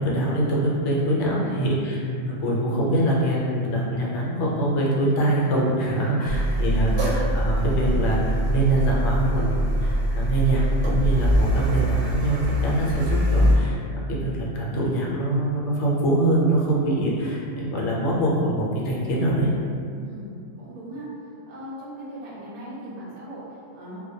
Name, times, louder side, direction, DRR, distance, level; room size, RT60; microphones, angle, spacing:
voice 1, 0.0-13.8 14.1-19.5, right 1 dB, 70° left, -4 dB, 0.9 m, -24 dB
voice 2, 1.3-1.6 6.0-7.1 20.0-21.1 21.5-24.0, equal, 50° right, -7 dB, 0.4 m, -39 dB
Car, 6.3-13.5, right 1 dB, 70° right, 0.8 m, -23 dB
2.2 x 2.1 x 2.6 m, 2.3 s
omnidirectional pair, 1.3 m